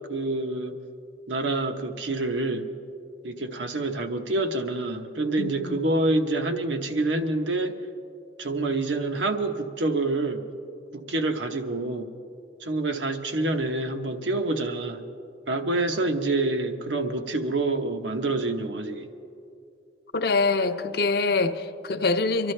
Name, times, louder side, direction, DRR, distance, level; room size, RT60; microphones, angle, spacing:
voice 1, 0.1-0.8 1.3-2.7 3.2-7.7 8.4-10.4 10.9-12.1 12.6-15.0 15.5-19.1, right 2 dB, 90° right, 5 dB, 1.0 m, -27 dB
voice 2, 5.4-5.9 20.1-22.5, left 3 dB, 55° left, 8 dB, 0.6 m, -25 dB
25.0 x 12.5 x 3.3 m, 2.5 s
head